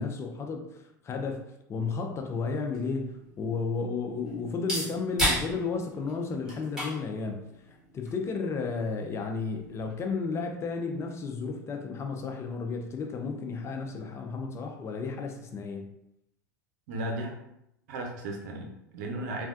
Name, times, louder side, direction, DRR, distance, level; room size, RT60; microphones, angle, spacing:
voice 1, 0.0-7.4 7.7-15.9, left 4 dB, 30° left, 0.4 m, -33 dB
sound 1, 2.7-10.2, equal, 5° right, 1.5 m, -36 dB
voice 2, 16.9-17.3 17.9-19.5, right 1 dB, 65° right, 0.7 m, -35 dB
3.2 x 2.2 x 2.5 m
hypercardioid pair, 90°, 10 cm